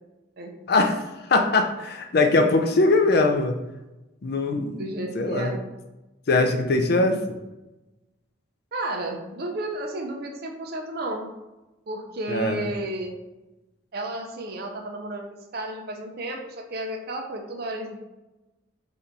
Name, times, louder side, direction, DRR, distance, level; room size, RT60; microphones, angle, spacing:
voice 1, 0.7-1.0 1.3-3.6 4.2-4.9 5.1-5.5 6.3-7.4 12.3-12.7, left 2 dB, 55° left, 5 dB, 0.4 m, -21 dB
voice 2, 4.8-5.6 8.7-11.3 11.9-13.1 13.9-15.3 15.5-18.0, right 1 dB, 50° right, 3 dB, 0.5 m, -32 dB
3.3 x 2.8 x 3.8 m, 1.0 s
head